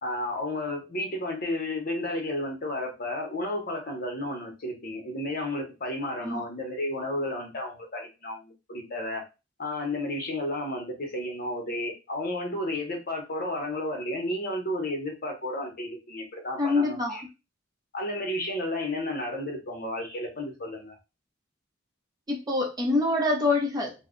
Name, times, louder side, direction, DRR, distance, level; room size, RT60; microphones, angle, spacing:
voice 1, 0.0-9.2 9.6-17.2 17.9-21.0, left 1 dB, 50° left, 3 dB, 0.8 m, -32 dB
voice 2, 16.6-17.2 22.3-23.9, left 2 dB, 20° right, 0 dB, 0.7 m, -25 dB
2.3 x 2.1 x 3.6 m, 0.27 s
head